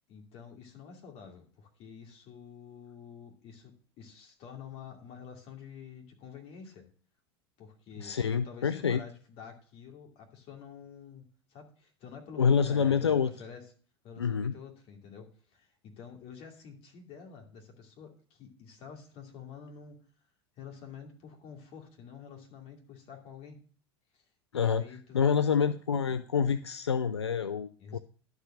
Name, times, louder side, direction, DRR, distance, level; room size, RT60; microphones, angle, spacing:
voice 1, 0.1-6.9 7.6-11.2 11.5-13.6 14.0-20.0 20.6-23.6 24.1-24.2 24.5-25.7 26.1-26.2 27.8-28.0, left 7 dB, 45° left, 2 dB, 2.6 m, -48 dB
voice 2, 8.0-9.0 12.4-13.3 14.2-14.5 24.5-24.8 25.1-28.0, left 6 dB, 85° left, 12 dB, 0.4 m, -27 dB
11.5 x 4.8 x 6.1 m, 0.42 s
figure-of-eight pair, 80°, 14 cm